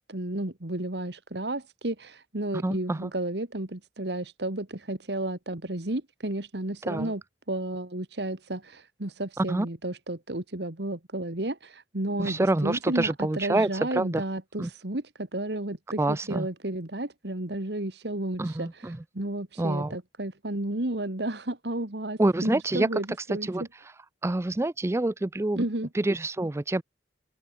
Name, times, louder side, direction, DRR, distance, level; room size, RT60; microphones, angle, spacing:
voice 1, 0.0-7.2 7.5-23.5 25.5-25.9, right 1 dB, 70° right, 2.2 m, -32 dB
voice 2, 2.5-3.1 6.8-7.1 9.4-9.7 12.2-14.2 14.6-14.7 16.0-16.5 18.4-19.0 19.6-20.0 22.2-22.9 23.4-23.6 24.2-25.6 25.9-26.8, right 2 dB, 15° right, 0.4 m, -27 dB
open air
head